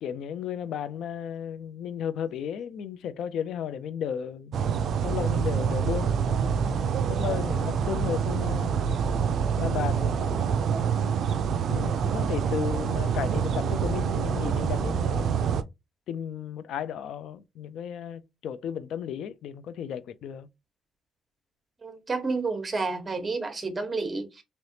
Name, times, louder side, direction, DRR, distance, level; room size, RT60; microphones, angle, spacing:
voice 1, 0.0-4.6 5.0-6.2 7.1-8.7 9.6-10.5 11.7-15.3 16.1-20.5, left 9 dB, 75° left, 0.4 m, -34 dB
sound 1, 4.5-15.6, right 7 dB, 65° right, 0.3 m, -26 dB
voice 2, 21.8-24.4, right 3 dB, 25° right, 1.1 m, -30 dB
3.2 x 2.9 x 2.8 m
cardioid pair, 90°, 0 cm